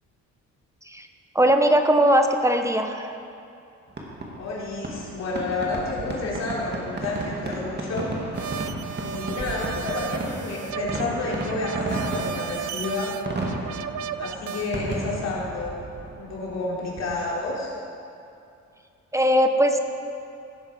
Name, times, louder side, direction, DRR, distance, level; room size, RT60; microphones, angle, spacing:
voice 1, 1.3-3.2 19.1-19.8, equal, 10° right, 6 dB, 0.8 m, -20 dB
Fireworks, 3.9-17.5, right 2 dB, 35° right, 2.0 m, -34 dB
voice 2, 4.4-8.1 8.9-13.1 14.2-15.7 16.2-17.7, left 3 dB, 60° left, -5 dB, 3.4 m, -30 dB
sound 1, 8.3-14.7, right 8 dB, 70° right, 0.5 m, -34 dB
17.0 x 7.3 x 4.9 m, 2.6 s
cardioid pair, 90°, 30 cm